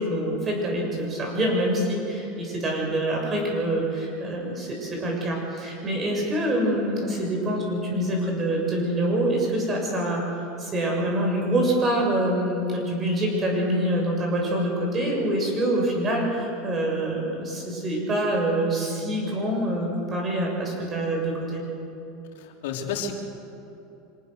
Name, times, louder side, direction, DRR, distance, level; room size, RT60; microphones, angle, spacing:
voice 1, 0.0-10.2 10.6-21.6, right 1 dB, 25° right, 0 dB, 6.9 m, -25 dB
voice 2, 22.3-23.1, left 6 dB, 80° left, 2 dB, 3.4 m, -31 dB
26.0 x 19.5 x 6.7 m, 3.0 s
supercardioid pair, 140°, 0 cm